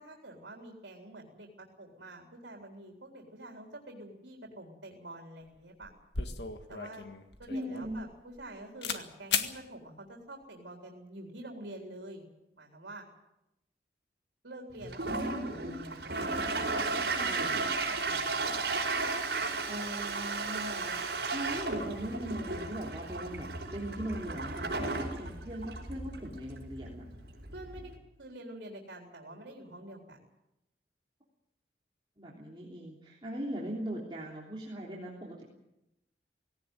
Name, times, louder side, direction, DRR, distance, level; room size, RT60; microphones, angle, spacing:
voice 1, 0.0-5.9 6.7-7.0 7.4-12.2 12.6-13.1 14.4-18.4 27.5-30.2, right 1 dB, 85° right, 1 dB, 3.8 m, -47 dB
sound 1, 5.4-5.6 5.8-8.5 8.8-9.0 9.3-9.5, left 6 dB, 80° left, 1.8 m, -35 dB
voice 2, 7.5-8.0 17.2-17.6 19.7-27.1 32.2-35.4, right 1 dB, 25° right, -4 dB, 3.4 m, -40 dB
Toilet flush, 14.8-27.9, right 3 dB, 70° right, 5.1 m, -34 dB
18.5 x 18.0 x 9.2 m, 0.89 s
head